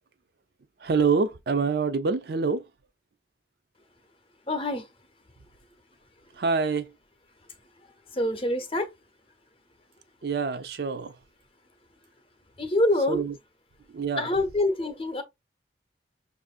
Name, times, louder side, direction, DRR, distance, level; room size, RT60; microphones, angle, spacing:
voice 1, 0.8-2.7 6.3-6.9 10.2-11.1 13.1-13.3 13.9-14.3, right 5 dB, 60° right, 0.4 m, -26 dB
voice 2, 4.5-4.9 8.1-8.9 12.6-13.2 14.2-15.2, left 1 dB, 30° left, 0.7 m, -25 dB
5.8 x 2.5 x 2.4 m
head